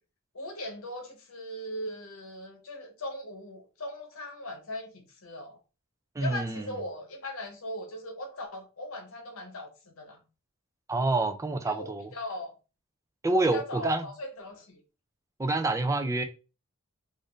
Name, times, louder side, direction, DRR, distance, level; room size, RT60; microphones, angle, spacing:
voice 1, 0.3-5.6 6.2-10.2 11.7-12.5 13.3-14.8, left 1 dB, 65° left, 0.9 m, -39 dB
voice 2, 6.2-6.7 10.9-12.1 13.2-14.1 15.4-16.2, right 2 dB, 15° right, 0.3 m, -27 dB
2.5 x 2.5 x 3.6 m
head